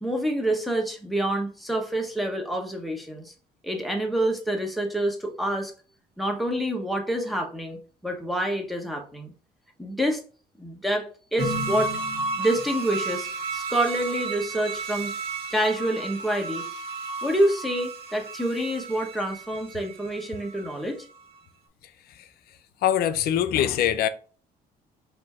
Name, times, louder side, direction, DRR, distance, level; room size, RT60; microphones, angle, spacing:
voice 1, 0.0-3.3 3.6-5.7 6.2-9.3 9.8-10.2 10.6-12.0 12.4-15.1 15.5-16.7 17.2-21.1, right 1 dB, ahead, 1.0 m, -27 dB
sound 1, 11.4-20.7 21.1-21.2, right 3 dB, 75° right, 1.5 m, -33 dB
voice 2, 22.8-24.1, left 10 dB, 65° left, 0.5 m, -22 dB
4.3 x 2.7 x 4.2 m
cardioid pair, 110°, 17 cm